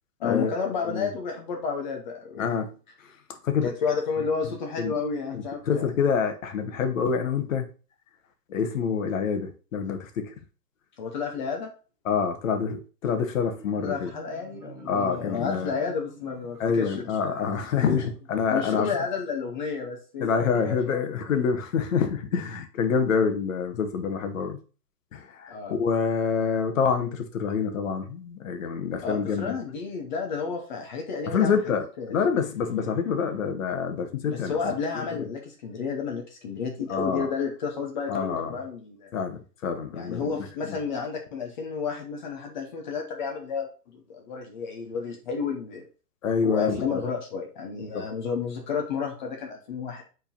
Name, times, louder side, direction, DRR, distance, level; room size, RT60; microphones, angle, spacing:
voice 1, 0.2-2.6 3.6-5.9 11.0-11.7 13.8-17.4 17.8-18.0 18.5-21.0 25.5-25.7 29.0-32.2 34.2-39.1 39.9-43.7 43.9-45.8 46.4-50.0, left 5 dB, 30° left, 2 dB, 0.9 m, -31 dB
voice 2, 2.4-2.7 3.4-3.7 4.8-5.0 5.3-7.7 8.5-10.3 12.0-14.1 14.9-15.7 16.6-18.9 20.2-24.6 25.1-29.5 31.2-34.8 35.1-35.3 36.9-37.3 38.1-38.5 39.1-40.8 46.2-46.8 47.9-48.0, left 6 dB, 50° left, 7 dB, 1.3 m, -27 dB
Marimba xylophone, 13.4-18.5, right 4 dB, 5° right, 0.9 m, -49 dB
5.1 x 3.9 x 5.1 m, 0.36 s
hypercardioid pair, 155°, 49 cm